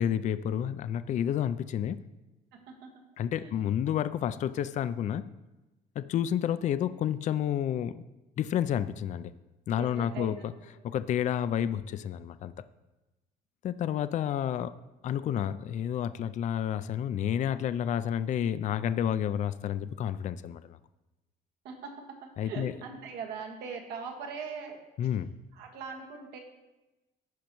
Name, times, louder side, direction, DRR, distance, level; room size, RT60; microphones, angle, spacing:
voice 1, 0.0-2.0 3.2-5.3 6.0-8.0 8.4-9.3 9.7-10.5 10.8-12.5 13.6-14.8 15.0-20.8 22.4-22.7 25.0-25.3, left 9 dB, 45° left, 13 dB, 0.4 m, -30 dB
voice 2, 2.5-3.1 3.3-3.5 9.8-10.8 21.6-24.8 25.5-26.4, right 5 dB, 85° right, 2 dB, 1.5 m, -41 dB
15.5 x 5.3 x 3.0 m, 1.1 s
cardioid pair, 110°, 17 cm